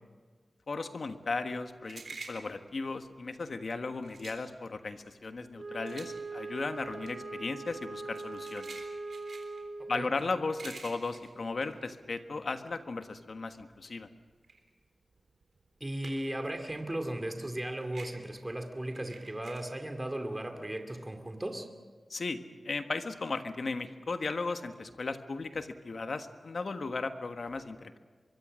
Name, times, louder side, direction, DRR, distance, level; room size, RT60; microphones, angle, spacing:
voice 1, 0.7-2.0 2.3-8.8 9.9-14.1 22.1-22.4 22.6-28.0, left 3 dB, 70° left, 7 dB, 1.4 m, -36 dB
sound 1, 1.2-12.7 13.1-16.5 16.8-19.6, right 4 dB, 85° right, 3.6 m, -50 dB
Wind instrument woodwind instrument, 5.5-10.2, right 3 dB, 50° right, 1.8 m, -41 dB
voice 2, 15.8-21.7, right 1 dB, 20° right, 5 dB, 2.4 m, -36 dB
24.0 x 23.5 x 6.4 m, 1.5 s
wide cardioid pair, 75°, 0 cm